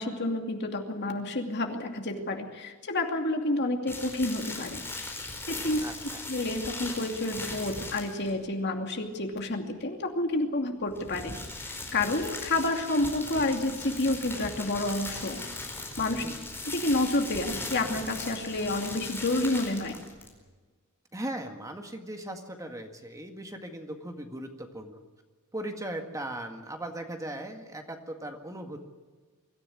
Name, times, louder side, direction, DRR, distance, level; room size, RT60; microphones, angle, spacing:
voice 1, 0.0-4.8 5.5-5.8 6.3-11.3 11.6-15.4 16.0-16.2 16.6-20.0, left 2 dB, 50° left, 3 dB, 2.7 m, -29 dB
sound 1, 3.9-8.4 10.8-20.4, left 2 dB, 10° left, 4.7 m, -39 dB
voice 2, 5.8-6.2 16.2-16.5 21.1-25.0 25.5-28.8, right 1 dB, 15° right, 4 dB, 1.8 m, -38 dB
24.0 x 14.5 x 9.5 m, 1.4 s
head